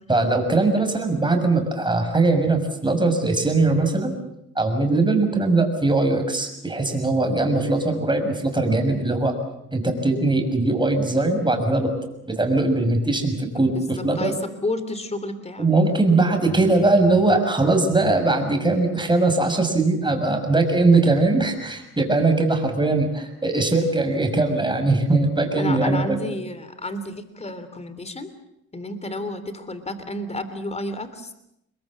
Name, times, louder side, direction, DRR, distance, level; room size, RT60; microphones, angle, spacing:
voice 1, 0.1-4.1 4.6-9.3 9.7-11.9 12.3-14.3 15.6-26.2, right 2 dB, 15° right, 5 dB, 6.3 m, -20 dB
voice 2, 14.1-15.7 25.6-28.3 28.7-31.3, left 1 dB, 20° left, 11 dB, 3.4 m, -31 dB
27.5 x 21.5 x 7.5 m, 0.79 s
cardioid pair, 90°, 30 cm